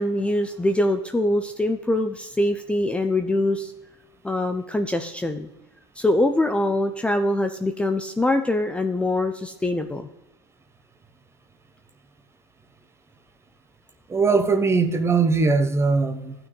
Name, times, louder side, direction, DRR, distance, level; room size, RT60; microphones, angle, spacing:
voice 1, 0.0-3.7 4.2-5.5 6.0-10.1, left 1 dB, 5° left, 0.6 m, -23 dB
voice 2, 14.1-16.3, right 4 dB, 15° right, 0.9 m, -20 dB
14.5 x 6.0 x 3.2 m
hypercardioid pair, 90°, 15 cm